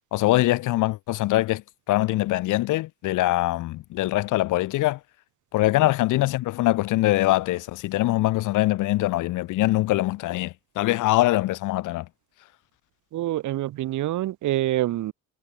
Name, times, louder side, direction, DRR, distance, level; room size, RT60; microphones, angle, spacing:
voice 1, 0.1-1.6 1.9-5.0 5.5-12.1, left 17 dB, 80° left, 0.9 m, -23 dB
voice 2, 13.1-15.1, right 14 dB, 75° right, 1.8 m, -26 dB
cardioid pair, 125°, 31 cm